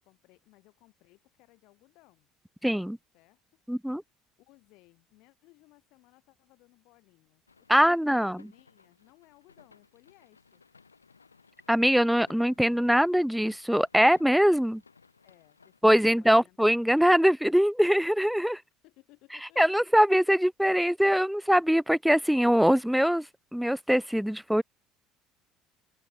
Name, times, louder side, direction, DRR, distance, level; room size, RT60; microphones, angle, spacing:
voice 1, 0.0-2.3 3.1-3.4 4.0-10.7 15.2-16.6 18.8-19.6, left 22 dB, 55° left, 6.4 m, -61 dB
voice 2, 2.6-3.0 3.7-4.0 7.7-8.4 11.7-14.8 15.8-18.6 19.6-23.2 23.5-24.6, equal, ahead, 0.4 m, -22 dB
sound 1, 7.5-15.8, left 5 dB, 85° left, 4.1 m, -60 dB
open air
figure-of-eight pair, 60°, 0 cm